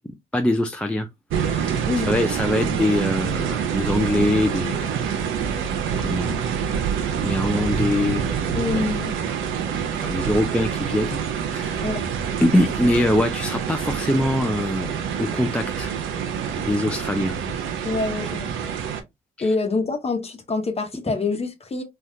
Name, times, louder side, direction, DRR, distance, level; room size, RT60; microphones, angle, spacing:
voice 1, 0.3-1.1 1.4-5.1 6.0-6.4 7.2-8.3 10.0-11.2 11.5-11.9 12.4-14.9 15.2-16.0 16.6-17.4, left 1 dB, 5° left, 0.4 m, -23 dB
sound 1, 1.3-19.0, right 7 dB, 80° right, 0.7 m, -26 dB
voice 2, 8.5-9.2 11.8-12.0 17.8-18.5 19.4-21.8, left 3 dB, 30° left, 0.9 m, -26 dB
3.4 x 2.4 x 2.6 m
cardioid pair, 90°, 20 cm